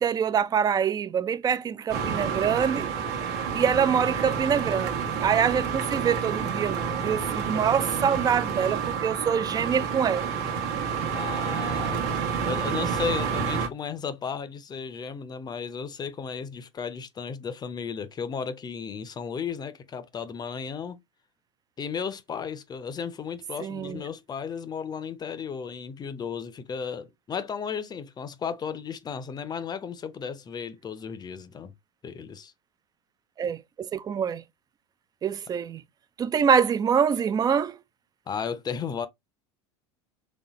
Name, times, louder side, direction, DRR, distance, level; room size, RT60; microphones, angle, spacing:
voice 1, 0.0-2.9 3.5-10.3 23.6-24.0 33.4-34.4 35.2-35.8 36.2-37.8, right 7 dB, 25° right, 0.4 m, -25 dB
sound 1, 1.9-13.7, right 6 dB, 65° right, 1.0 m, -29 dB
voice 2, 11.1-12.0 12.4-21.0 21.8-31.7 32.0-32.5 38.3-39.1, left 6 dB, 25° left, 0.6 m, -34 dB
4.1 x 3.3 x 3.0 m
hypercardioid pair, 85°, 15 cm